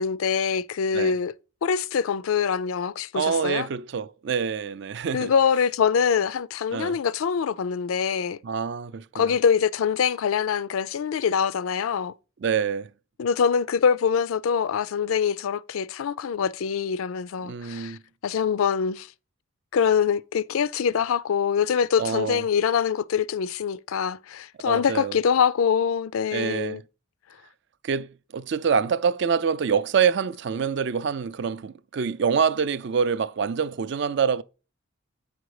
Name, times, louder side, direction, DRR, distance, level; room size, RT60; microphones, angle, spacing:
voice 1, 0.0-1.3 1.6-3.7 5.1-8.4 9.1-12.1 13.2-18.0 18.2-19.1 19.7-26.8, left 7 dB, 80° left, 0.4 m, -24 dB
voice 2, 3.1-5.3 6.7-7.0 8.4-9.4 12.4-12.9 17.4-18.0 22.0-22.4 24.7-25.2 26.3-26.8 27.8-34.4, right 6 dB, 55° right, 0.4 m, -26 dB
8.3 x 5.1 x 4.8 m
head